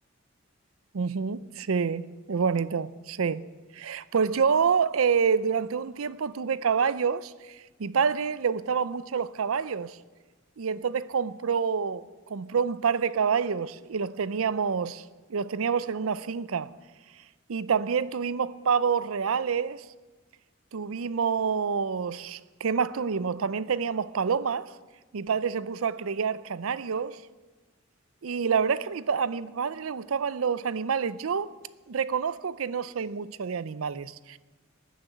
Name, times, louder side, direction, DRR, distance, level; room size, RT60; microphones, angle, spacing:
voice 1, 0.9-3.5 3.7-7.3 7.8-10.0 10.6-15.0 15.3-16.7 17.5-19.9 20.7-24.7 25.1-27.2 28.2-31.5 31.9-34.4, right 6 dB, 85° right, 0.5 m, -27 dB
13.5 x 9.5 x 7.9 m
head